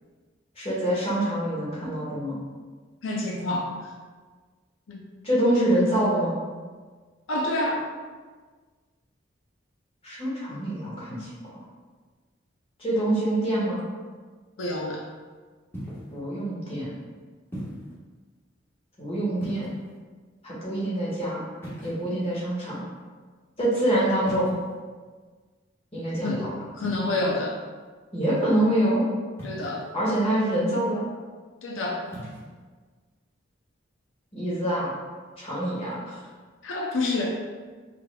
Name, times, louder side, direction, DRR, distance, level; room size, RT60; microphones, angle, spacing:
voice 1, 0.5-2.4 5.2-6.4 10.0-11.6 12.8-13.8 16.1-16.9 19.0-19.7 20.4-21.4 21.8-22.8 23.6-24.5 25.9-26.5 28.1-29.0 29.9-31.0 34.3-34.9 35.4-36.2, right 1 dB, 30° left, -7 dB, 1.3 m, -25 dB
voice 2, 3.0-3.9 4.9-5.0 7.3-7.8 14.6-15.0 26.2-27.6 29.4-29.8 31.6-32.0 36.6-37.3, left 2 dB, 90° left, -1 dB, 0.5 m, -28 dB
sound 1, 15.7-16.2 17.5-17.9 19.3-20.0 21.6-22.3 24.2-24.8 26.8-27.1 29.4-29.9 32.0-32.4, equal, 10° left, 1.2 m, -38 dB
4.9 x 3.3 x 2.2 m, 1.5 s
head